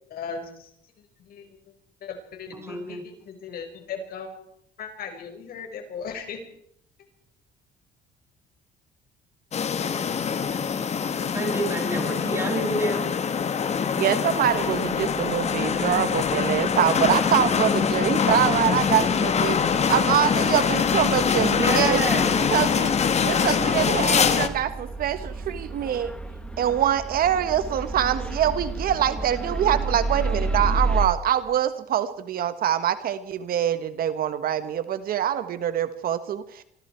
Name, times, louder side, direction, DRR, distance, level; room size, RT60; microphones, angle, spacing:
voice 1, 0.1-0.7 1.0-1.5 2.0-4.4 4.8-6.4, left 6 dB, 60° left, 6 dB, 5.0 m, -37 dB
voice 2, 2.5-3.0 11.3-13.1 21.4-22.4, right 1 dB, 15° right, 3 dB, 6.7 m, -28 dB
sound 1, 9.5-24.5, left 6 dB, 40° left, 2.0 m, -24 dB
voice 3, 13.9-22.9 23.2-26.1 26.6-36.6, right 10 dB, 60° right, 12 dB, 1.5 m, -24 dB
sound 2, 14.5-31.1, right 2 dB, 5° left, 2.3 m, -33 dB
25.5 x 25.0 x 4.6 m, 0.69 s
cardioid pair, 110°, 17 cm